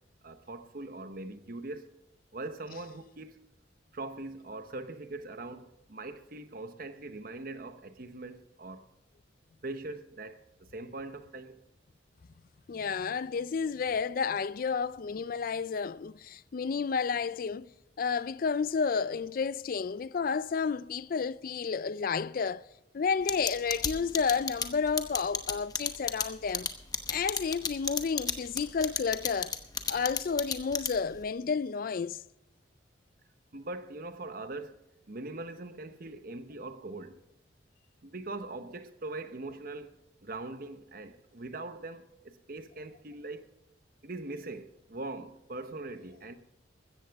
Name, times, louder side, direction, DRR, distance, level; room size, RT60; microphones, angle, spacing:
voice 1, 0.2-1.9 2.3-3.5 3.9-8.9 9.6-11.6 33.5-34.8 35.1-37.2 38.0-43.5 44.0-46.4, right 2 dB, 50° right, 0.9 m, -41 dB
voice 2, 12.7-17.7 18.0-22.7 22.9-26.7 27.1-29.6 29.9-32.2, left 5 dB, 50° left, 0.4 m, -31 dB
sound 1, 23.3-31.2, left 6 dB, 20° left, 0.9 m, -31 dB
15.5 x 13.5 x 3.5 m
head